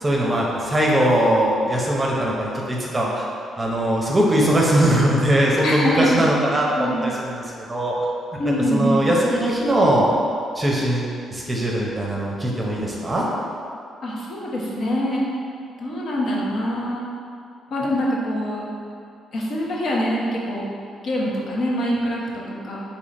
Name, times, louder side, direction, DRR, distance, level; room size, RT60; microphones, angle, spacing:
voice 1, 0.0-3.2 3.6-7.9 8.4-10.1 10.5-13.3, right 1 dB, 20° right, -3 dB, 0.7 m, -21 dB
voice 2, 5.6-6.2 6.7-7.1 8.4-9.1 14.0-15.2 15.8-17.1 17.7-18.7 19.3-20.7 21.0-22.8, equal, 60° left, -4 dB, 0.9 m, -24 dB
3.7 x 2.9 x 4.1 m, 2.5 s
cardioid pair, 90°, 0 cm